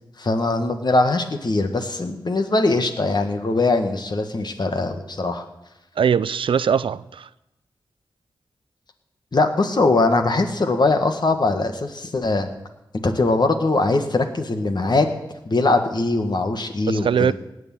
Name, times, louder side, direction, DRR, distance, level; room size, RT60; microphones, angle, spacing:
voice 1, 0.2-5.4 9.3-12.5 13.0-15.1 15.4-17.3, left 2 dB, 55° left, 1.7 m, -21 dB
voice 2, 6.0-7.3 16.9-17.3, right 7 dB, 85° right, 0.4 m, -21 dB
18.0 x 6.5 x 9.1 m
cardioid pair, 45°, 9 cm